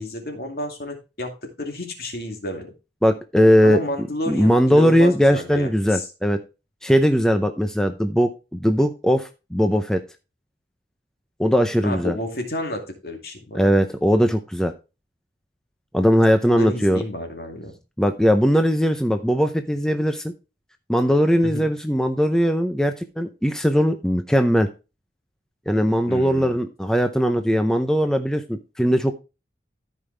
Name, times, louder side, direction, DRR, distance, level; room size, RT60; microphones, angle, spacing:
voice 1, 0.0-2.7 3.6-6.1 11.8-13.7 16.4-17.7 21.4-21.7 26.1-26.6, left 1 dB, 60° left, 4 dB, 2.4 m, -31 dB
voice 2, 3.0-6.4 6.8-10.0 11.4-12.2 13.5-14.7 15.9-17.0 18.0-20.3 20.9-24.7 25.7-29.2, equal, 5° left, 6 dB, 0.6 m, -19 dB
14.0 x 5.4 x 3.3 m, 0.29 s
head